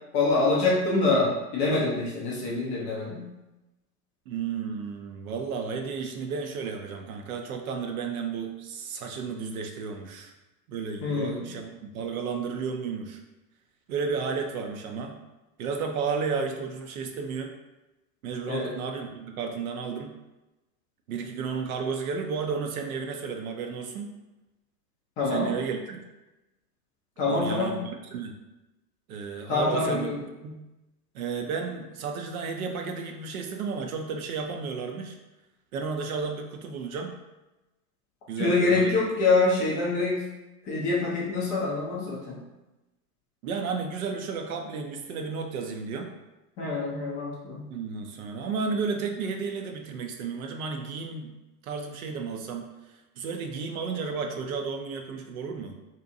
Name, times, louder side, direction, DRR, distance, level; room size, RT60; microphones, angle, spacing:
voice 1, 0.1-3.2 11.0-11.5 18.5-18.7 25.2-25.5 27.2-27.8 29.5-30.1 38.4-40.2 40.6-42.4 46.6-47.7, left 3 dB, 20° left, -5 dB, 0.3 m, -25 dB
voice 2, 4.3-10.3 10.7-13.2 13.9-15.2 15.6-17.5 18.2-20.1 21.1-24.1 25.3-26.0 27.3-28.3 29.1-30.2 30.4-30.6 31.1-35.2 35.7-37.1 38.3-38.9 43.4-46.1 47.7-51.3 51.6-52.7 53.2-55.8, right 5 dB, 60° right, 4 dB, 0.5 m, -32 dB
2.7 x 2.1 x 2.6 m, 1.0 s
hypercardioid pair, 95°, 48 cm